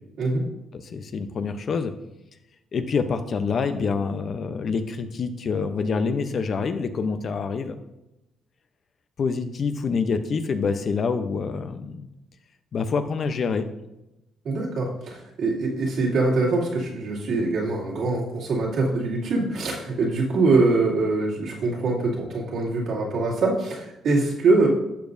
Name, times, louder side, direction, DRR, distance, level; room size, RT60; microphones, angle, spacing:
voice 1, 0.7-1.9 2.7-7.8 9.2-12.0 12.7-13.7, left 5 dB, 55° left, 9 dB, 0.8 m, -26 dB
voice 2, 14.4-24.7, right 3 dB, 70° right, -4 dB, 2.6 m, -23 dB
12.0 x 7.1 x 2.7 m, 0.91 s
cardioid pair, 90°, 0 cm